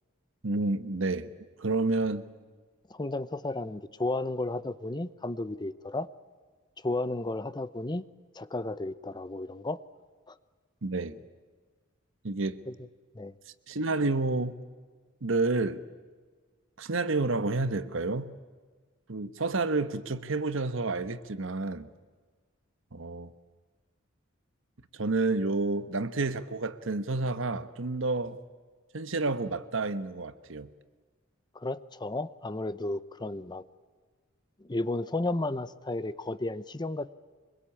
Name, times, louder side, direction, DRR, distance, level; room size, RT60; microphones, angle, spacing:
voice 1, 0.4-1.3 1.6-2.2 10.8-11.2 12.2-12.6 13.7-14.6 15.2-15.8 16.8-18.3 19.1-21.9 22.9-23.3 24.9-28.4 28.9-30.7, right 3 dB, 70° right, 1.2 m, -29 dB
voice 2, 2.9-6.1 6.8-8.1 8.3-9.8 10.3-10.4 12.7-12.8 13.1-13.3 31.5-33.6 34.6-37.1, left 2 dB, 20° left, 0.7 m, -33 dB
24.5 x 22.0 x 8.6 m
head